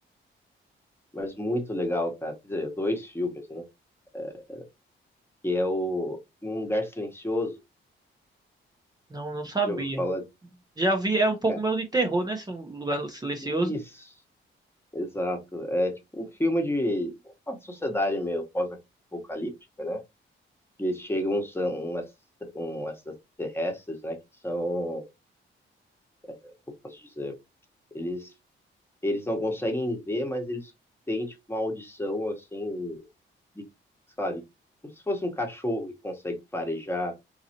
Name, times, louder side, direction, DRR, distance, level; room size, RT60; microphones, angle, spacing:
voice 1, 1.1-3.7 4.1-4.7 5.4-7.6 9.7-10.3 11.5-11.6 13.4-13.8 14.9-17.1 17.5-18.8 19.1-19.5 19.8-20.0 20.8-22.1 22.5-24.2 24.4-25.1 26.4-26.5 26.8-27.4 27.9-28.3 29.0-30.7 31.1-33.1 33.5-33.6 34.2-34.4 35.1-37.1, left 1 dB, 10° left, 1.2 m, -30 dB
voice 2, 9.1-10.0 10.8-13.7, right 2 dB, 20° right, 0.8 m, -27 dB
4.0 x 2.7 x 2.8 m
cardioid pair, 85°, 21 cm